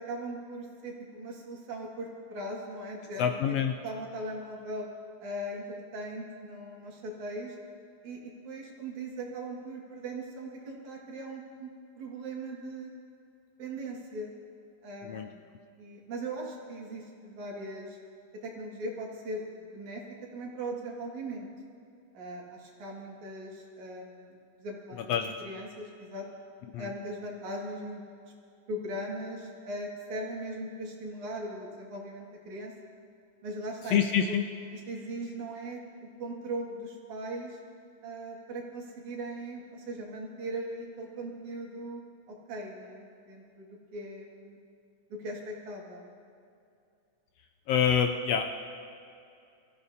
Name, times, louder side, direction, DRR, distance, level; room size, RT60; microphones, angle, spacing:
voice 1, 0.0-3.6 3.8-4.9 5.2-7.6 8.0-11.7 12.0-12.9 13.6-14.3 14.8-15.5 15.8-18.0 18.4-20.0 20.3-21.5 22.1-26.3 26.8-28.0 28.7-32.7 33.4-34.4 34.7-37.6 38.0-42.0 42.3-43.7 43.9-44.6 45.1-46.1, right 1 dB, 80° right, -2 dB, 3.4 m, -39 dB
voice 2, 3.2-3.7 15.0-15.3 25.1-25.3 26.7-26.9 33.9-34.5 47.7-48.4, left 8 dB, 75° left, 6 dB, 1.5 m, -26 dB
25.0 x 15.0 x 2.8 m, 2.5 s
omnidirectional pair, 3.3 m